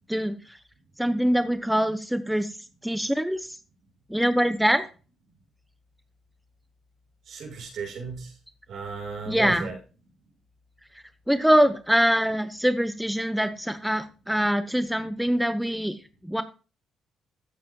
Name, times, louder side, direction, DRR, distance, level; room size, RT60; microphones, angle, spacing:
voice 1, 0.1-0.6 1.0-2.5 2.8-3.5 4.1-4.9 9.3-9.7 11.3-16.0 16.2-16.4, equal, ahead, 10 dB, 0.9 m, -24 dB
voice 2, 7.3-8.3 8.7-9.7, right 5 dB, 65° right, 1 dB, 6.0 m, -35 dB
14.5 x 8.2 x 2.3 m, 0.34 s
cardioid pair, 90°, 0 cm